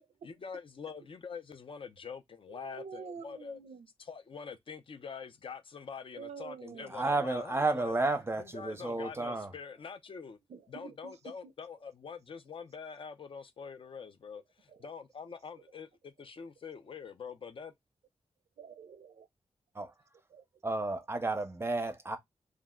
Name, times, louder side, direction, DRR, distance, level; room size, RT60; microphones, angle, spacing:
voice 1, 0.2-3.6 4.0-8.0 8.4-10.4 10.7-17.7, left 6 dB, 50° left, 0.5 m, -45 dB
voice 2, 2.5-3.9 6.2-6.9 10.5-11.5 14.7-14.9 18.6-19.3 20.3-20.6, right 6 dB, 70° right, 0.4 m, -48 dB
voice 3, 6.9-9.5 19.7-19.9 20.6-22.2, right 2 dB, 20° right, 0.5 m, -32 dB
2.4 x 2.1 x 3.5 m
wide cardioid pair, 90°, 12 cm